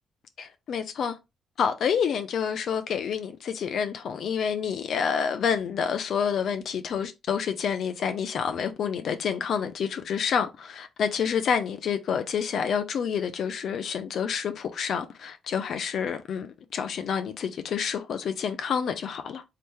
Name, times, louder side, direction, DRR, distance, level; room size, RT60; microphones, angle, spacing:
voice 1, 0.4-1.2 1.6-19.4, left 7 dB, 65° left, 0.4 m, -28 dB
3.2 x 2.8 x 3.4 m
cardioid pair, 90°, 0 cm